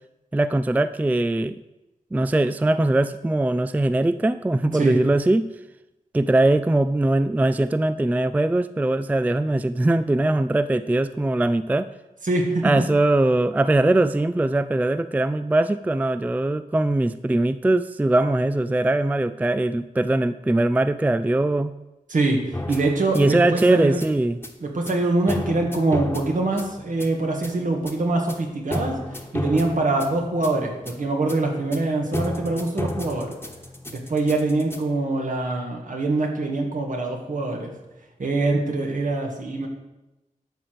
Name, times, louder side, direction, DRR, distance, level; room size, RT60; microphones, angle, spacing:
voice 1, 0.3-1.6 2.1-5.5 6.1-11.9 12.6-21.7 23.1-24.4, right 2 dB, 10° right, 13 dB, 0.3 m, -21 dB
voice 2, 12.2-12.9 22.1-24.0 24.6-29.0 29.3-33.3 33.9-37.7 38.2-39.7, right 2 dB, 65° right, 2 dB, 2.1 m, -24 dB
sound 1, 22.5-34.8, left 1 dB, 15° left, 1.3 m, -33 dB
11.5 x 5.0 x 7.7 m, 0.99 s
wide cardioid pair, 95°, 14 cm